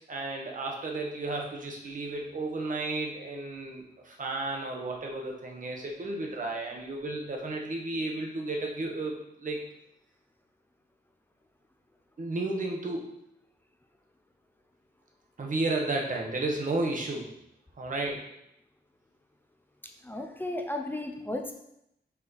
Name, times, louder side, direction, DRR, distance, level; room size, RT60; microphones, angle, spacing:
voice 1, 0.0-9.6 12.2-13.1 15.4-17.3 17.8-18.3, right 2 dB, 50° right, 1 dB, 1.0 m, -33 dB
voice 2, 19.8-21.5, left 1 dB, 10° left, 4 dB, 0.5 m, -35 dB
5.7 x 4.2 x 4.0 m, 0.80 s
wide cardioid pair, 155°, 18 cm